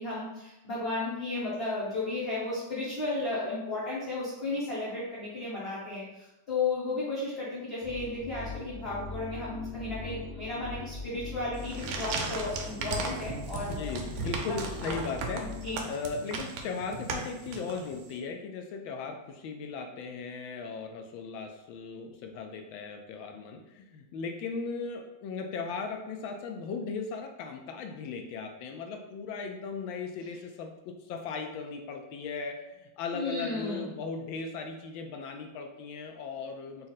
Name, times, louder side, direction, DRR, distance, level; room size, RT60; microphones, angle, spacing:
voice 1, 0.0-13.8 14.8-15.0 15.6-15.8 33.1-33.8, left 2 dB, 40° left, -9 dB, 1.0 m, -34 dB
sound 1, 7.8-16.1, left 3 dB, 10° left, 0.7 m, -41 dB
sound 2, 11.5-18.1, right 4 dB, 85° right, 1.5 m, -37 dB
voice 2, 13.6-15.5 15.9-36.9, left 4 dB, 75° left, 4 dB, 1.3 m, -37 dB
4.2 x 2.6 x 4.0 m, 0.94 s
omnidirectional pair, 2.3 m